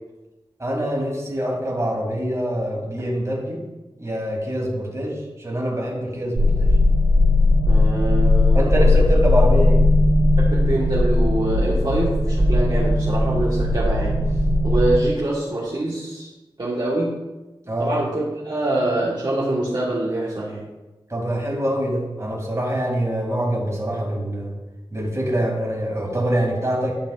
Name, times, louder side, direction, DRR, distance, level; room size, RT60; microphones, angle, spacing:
voice 1, 0.6-3.6 4.0-6.7 8.5-9.8 17.7-17.9 21.1-24.5 24.9-27.0, equal, 30° right, -2 dB, 2.4 m, -24 dB
sound 1, 6.3-15.0, left 2 dB, 90° right, 2.5 m, -18 dB
voice 2, 7.7-8.9 10.4-14.2 14.6-16.3 16.6-17.2 17.8-20.7, right 1 dB, 50° right, -7 dB, 1.4 m, -25 dB
12.0 x 5.1 x 2.4 m, 1.1 s
wide cardioid pair, 55°, 10 cm